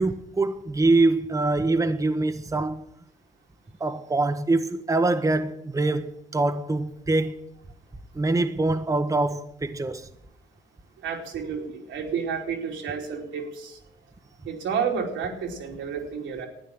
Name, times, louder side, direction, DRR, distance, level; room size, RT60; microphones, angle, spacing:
voice 1, 0.0-2.8 3.8-7.3 8.1-10.1, right 2 dB, 15° right, 0.9 m, -24 dB
voice 2, 11.0-13.8 14.4-16.5, right 6 dB, 85° right, 3.1 m, -30 dB
12.5 x 9.5 x 8.7 m
cardioid pair, 90°, 20 cm